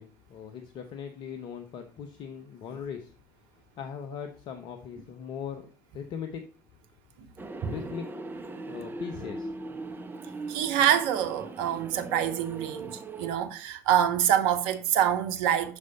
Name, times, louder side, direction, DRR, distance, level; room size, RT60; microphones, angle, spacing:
voice 1, 0.0-3.1 3.5-5.7 5.9-6.5 7.6-8.1 8.7-9.5, left 7 dB, 55° left, 0.8 m, -39 dB
sound 1, 7.4-13.3, right 2 dB, 20° right, 0.9 m, -40 dB
voice 2, 10.5-15.8, right 10 dB, 65° right, 0.9 m, -26 dB
6.3 x 5.3 x 4.0 m
hypercardioid pair, 60°, 10 cm